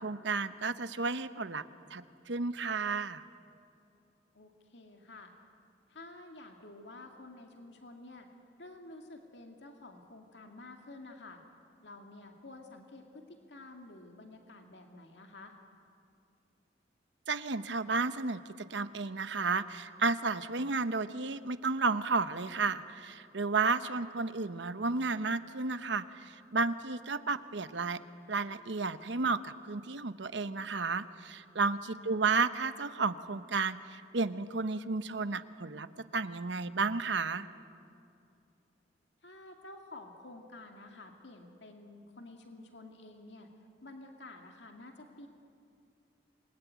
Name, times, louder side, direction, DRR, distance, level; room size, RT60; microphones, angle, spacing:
voice 1, 0.0-1.6 1.9-3.2 17.3-28.0 28.3-35.9 36.1-37.5, right 4 dB, 75° right, 12 dB, 0.9 m, -32 dB
voice 2, 4.3-5.3 5.9-8.3 8.6-11.4 11.8-15.6 23.8-24.0 31.8-32.3 39.2-43.5 43.8-45.3, left 2 dB, 70° left, 3 dB, 2.2 m, -50 dB
27.5 x 20.5 x 9.5 m, 2.6 s
head